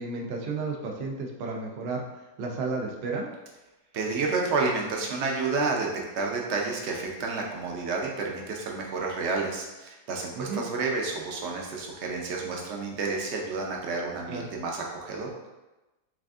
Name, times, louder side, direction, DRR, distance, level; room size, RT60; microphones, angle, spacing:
voice 1, 0.0-2.0 2.4-3.3 10.4-10.6 14.3-14.5, right 3 dB, 90° right, 0 dB, 0.5 m, -32 dB
voice 2, 3.9-5.9 6.1-15.3, right 3 dB, 60° right, 0 dB, 0.8 m, -30 dB
5.8 x 2.5 x 2.4 m, 1.1 s
omnidirectional pair, 1.7 m